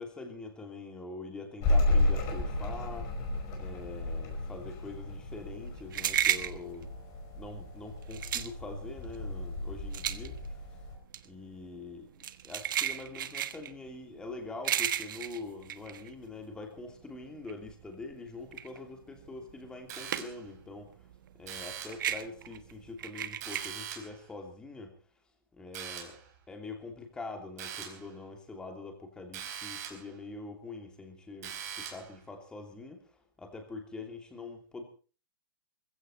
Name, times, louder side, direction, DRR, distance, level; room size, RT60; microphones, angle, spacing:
voice 1, 0.0-3.1 3.6-6.9 7.3-10.5 11.2-12.1 12.4-20.9 21.4-24.9 25.5-26.2 26.5-34.8, left 3 dB, 5° left, 4 dB, 2.9 m, -44 dB
sound 1, 1.6-10.9, left 2 dB, 25° left, 5.2 m, -33 dB
sound 2, 5.2-16.8 17.1-20.6 20.9-23.7, right 10 dB, 60° right, 1.4 m, -34 dB
sound 3, 19.9-20.6 21.4-22.1 23.4-24.2 25.7-26.3 27.6-28.1 29.3-30.1 31.4-32.2, right 8 dB, 45° right, 4.4 m, -42 dB
21.0 x 15.5 x 4.3 m, 0.38 s
hypercardioid pair, 165°, 12 cm